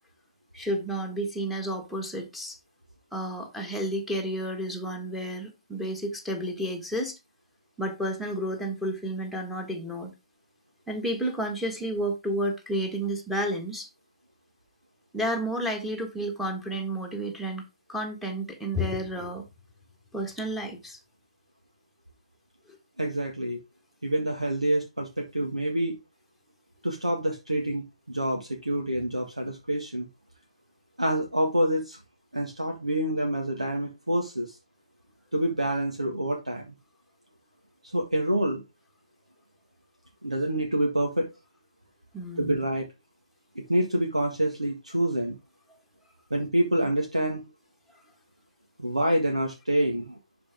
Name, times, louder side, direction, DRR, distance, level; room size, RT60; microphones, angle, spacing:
voice 1, 0.5-2.6 3.1-7.2 7.8-10.1 10.9-13.9 15.1-17.6 17.9-19.5 20.1-21.0 22.7-22.8 42.1-42.5, right 1 dB, ahead, 1.6 m, -31 dB
voice 2, 23.0-23.6 24.0-26.0 26.8-30.1 31.0-32.0 32.3-34.6 35.3-36.7 37.9-38.6 40.2-41.3 42.4-42.9 43.6-45.4 46.3-47.4 48.8-50.2, right 1 dB, 85° right, 1.7 m, -27 dB
11.5 x 4.3 x 3.6 m
figure-of-eight pair, 135°, 3 cm